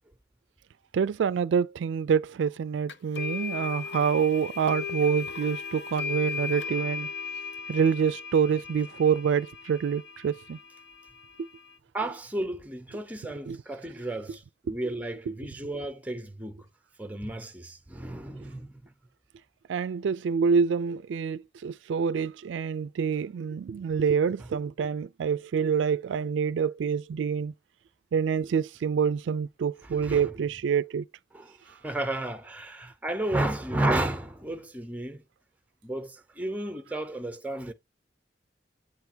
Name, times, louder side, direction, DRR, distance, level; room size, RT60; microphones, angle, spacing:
voice 1, 0.9-7.1 7.7-10.6 13.5-13.6 19.7-27.5 28.1-31.0, right 6 dB, 80° right, 0.3 m, -26 dB
sound 1, 2.9-11.8, left 6 dB, 65° left, 0.8 m, -37 dB
voice 2, 11.9-16.7 17.0-18.9 24.4-24.5 29.8-30.6 31.3-35.2 35.8-37.7, right 1 dB, 10° right, 0.8 m, -33 dB
8.5 x 3.4 x 4.4 m
head